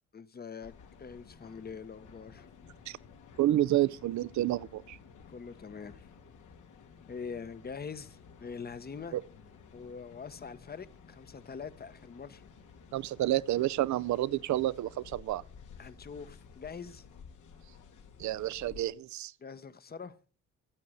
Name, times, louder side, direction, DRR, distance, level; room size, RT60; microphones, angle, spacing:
voice 1, 0.1-0.7 1.0-2.5 5.3-6.1 7.1-9.2 9.7-12.4 15.8-17.1 19.4-20.2, left 5 dB, 30° left, 1.1 m, -44 dB
sound 1, 0.6-18.8, left 6 dB, 80° left, 2.7 m, -54 dB
voice 2, 3.4-5.0 9.1-9.2 12.9-15.4 18.2-19.3, right 14 dB, 70° right, 0.6 m, -29 dB
15.0 x 8.7 x 6.5 m
cardioid pair, 90°, 30 cm